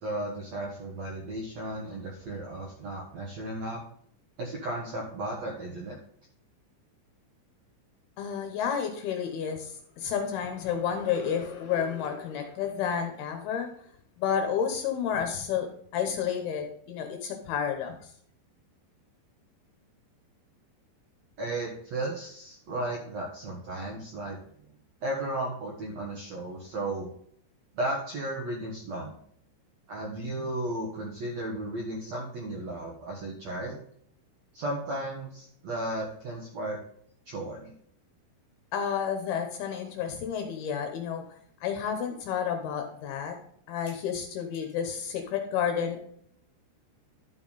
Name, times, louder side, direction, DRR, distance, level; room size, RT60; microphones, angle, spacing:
voice 1, 0.0-3.8 4.4-5.9 21.4-24.4 25.0-27.1 27.7-29.1 29.9-33.8 34.5-36.8 37.2-37.7, right 1 dB, 80° right, -2 dB, 1.5 m, -34 dB
voice 2, 8.2-13.7 14.2-18.0 38.7-41.2 41.6-43.4 43.7-46.0, left 7 dB, 75° left, 5 dB, 2.5 m, -31 dB
12.0 x 5.8 x 4.0 m, 0.65 s
omnidirectional pair, 5.4 m